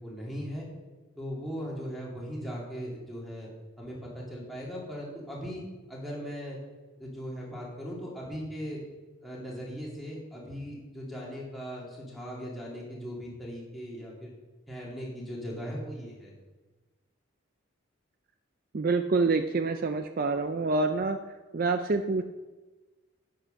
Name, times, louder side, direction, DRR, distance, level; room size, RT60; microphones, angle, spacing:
voice 1, 0.0-0.7 1.2-3.5 3.8-5.6 5.9-6.6 7.0-8.8 9.2-14.3 14.7-16.3, equal, ahead, -6 dB, 2.8 m, -38 dB
voice 2, 18.7-22.2, right 3 dB, 40° right, 7 dB, 0.4 m, -27 dB
10.5 x 8.6 x 5.6 m, 1.2 s
head